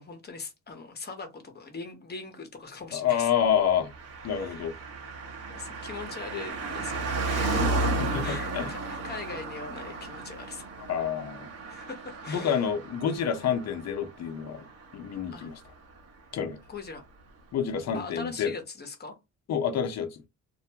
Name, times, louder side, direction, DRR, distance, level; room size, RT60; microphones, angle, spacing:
voice 1, 0.0-3.3 4.3-4.7 5.5-7.9 8.2-10.7 11.7-12.7 15.3-15.5 16.7-17.0 17.9-19.1, left 4 dB, 35° left, 1.1 m, -41 dB
voice 2, 2.9-3.9 4.2-4.7 7.5-8.2 8.5-8.7 10.8-11.5 12.3-14.6 14.9-15.5 16.3-16.6 17.5-18.6 19.5-20.2, left 8 dB, 60° left, 0.7 m, -28 dB
Car passing by, 3.9-15.7 16.0-16.1, right 3 dB, 55° right, 1.0 m, -34 dB
2.6 x 2.2 x 2.8 m
cardioid pair, 90°, 30 cm